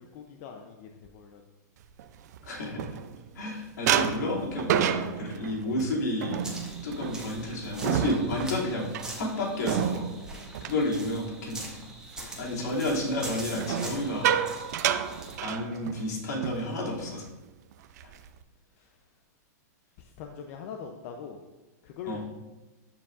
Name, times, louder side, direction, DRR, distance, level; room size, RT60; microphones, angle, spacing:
voice 1, 0.0-1.4 3.8-4.2 12.2-12.6 14.8-15.0 18.7-19.0 20.0-21.4 21.8-22.2, left 7 dB, 50° left, 3 dB, 0.6 m, -43 dB
sound 1, 2.0-3.4 3.9-11.7 12.0-12.4 13.5-16.1 16.4-16.6 16.9-17.2 17.7-18.4, right 9 dB, 70° right, 0.5 m, -30 dB
voice 2, 2.4-2.9 3.3-6.4 6.8-10.1 10.6-11.7 12.4-14.4 15.4-17.3 18.0-18.1 22.1-22.2, left 1 dB, 80° left, -5 dB, 2.7 m, -31 dB
sound 2, 6.4-15.4, right 2 dB, 5° right, 1.4 m, -43 dB
13.5 x 4.7 x 2.5 m, 1.1 s
hypercardioid pair, 130°, 9 cm